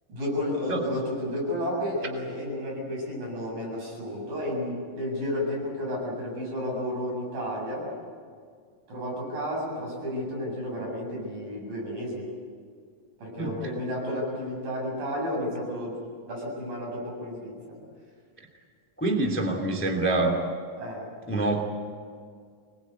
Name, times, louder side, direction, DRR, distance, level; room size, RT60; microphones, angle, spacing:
voice 1, 0.1-7.9 8.9-12.3 13.2-16.0 16.3-17.8 20.8-21.1, left 1 dB, 80° right, -2 dB, 9.5 m, -32 dB
voice 2, 19.0-20.4 21.3-21.6, right 2 dB, 5° left, 2 dB, 1.8 m, -26 dB
25.0 x 21.0 x 8.3 m, 2.1 s
omnidirectional pair, 4.0 m